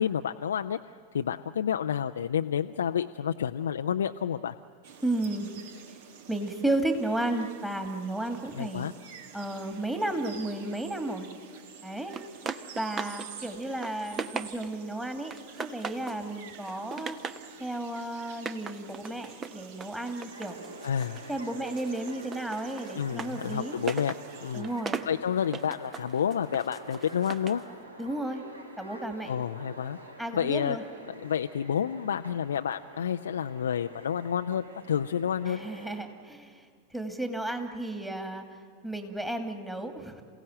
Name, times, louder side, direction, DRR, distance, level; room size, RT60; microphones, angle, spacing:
voice 1, 0.0-4.5 8.6-8.9 20.8-21.2 22.9-24.7 25.1-27.6 29.3-30.0 30.3-30.8 31.1-35.6, left 8 dB, 65° left, 7 dB, 0.5 m, -29 dB
sound 1, 4.8-24.6, right 7 dB, 50° right, 1.6 m, -49 dB
voice 2, 5.0-5.5 6.3-8.9 9.3-11.3 11.8-12.2 12.8-15.3 15.6-17.2 17.6-20.6 21.3-23.8 24.5-25.0 28.0-28.4 28.8-29.3 30.2-30.8 35.5-36.6 36.9-38.4 38.8-40.2, right 1 dB, 5° right, 6 dB, 2.4 m, -33 dB
sound 2, 12.1-13.3 13.6-14.9 15.3-16.2 16.6-17.5 18.3-21.3 21.6-27.6, right 5 dB, 20° right, 1.0 m, -39 dB
sound 3, 20.3-36.0, right 1 dB, 80° right, 2.5 m, -47 dB
28.0 x 17.0 x 9.1 m, 2.2 s
figure-of-eight pair, 90°, 0 cm